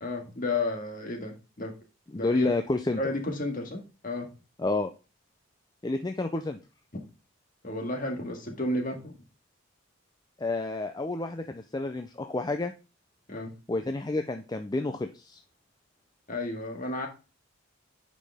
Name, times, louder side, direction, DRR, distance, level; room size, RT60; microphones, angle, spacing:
voice 1, 0.0-1.7 2.2-2.6 3.0-4.3 6.9-7.0 7.6-9.2 13.3-13.5 16.3-17.1, left 2 dB, 40° left, 2 dB, 1.9 m, -32 dB
voice 2, 2.1-3.0 4.6-4.9 5.8-6.6 10.4-12.7 13.7-15.4, left 2 dB, 20° left, 7 dB, 0.4 m, -30 dB
9.6 x 5.2 x 3.5 m, 0.31 s
head